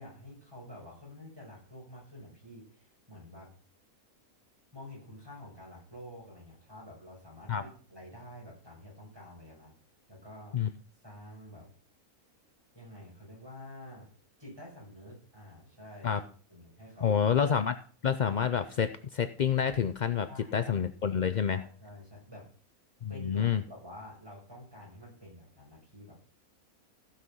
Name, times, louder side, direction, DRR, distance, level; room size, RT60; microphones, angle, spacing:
voice 1, 0.0-3.5 4.7-9.7 10.1-10.6 11.0-11.7 12.7-14.1 14.4-16.1 16.5-17.3 20.3-20.9 21.5-22.5 23.1-26.2, left 1 dB, 15° right, -3 dB, 6.1 m, -49 dB
voice 2, 17.0-17.8 18.0-21.6 23.0-23.6, left 7 dB, 75° left, 10 dB, 0.4 m, -28 dB
15.0 x 6.0 x 5.6 m, 0.42 s
omnidirectional pair, 1.6 m